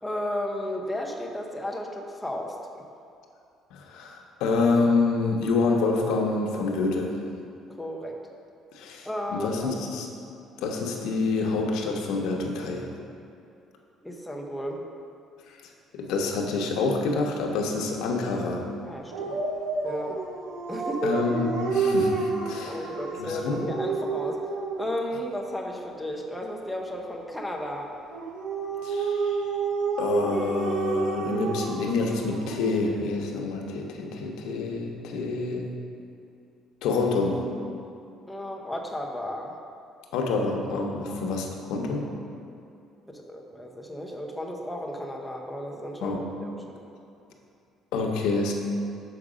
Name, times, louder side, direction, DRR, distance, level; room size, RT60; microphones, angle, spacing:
voice 1, 0.0-2.8 7.8-8.1 9.1-9.7 14.0-14.8 18.9-19.4 19.8-20.2 20.7-21.2 22.6-24.4 24.8-27.9 38.3-39.5 43.1-46.8, equal, 5° left, 0 dB, 0.6 m, -33 dB
voice 2, 3.7-7.1 8.7-10.1 10.6-12.9 15.5-15.6 15.9-18.6 21.0-22.9 23.2-23.7 28.8-29.5 30.0-35.7 36.8-37.4 40.1-42.1 46.0-46.3 47.9-48.5, left 3 dB, 80° left, 1 dB, 0.9 m, -27 dB
Dog, 19.1-24.9 28.1-32.7, right 4 dB, 90° right, 0.9 m, -29 dB
6.5 x 4.8 x 5.0 m, 2.6 s
cardioid pair, 160°, 0 cm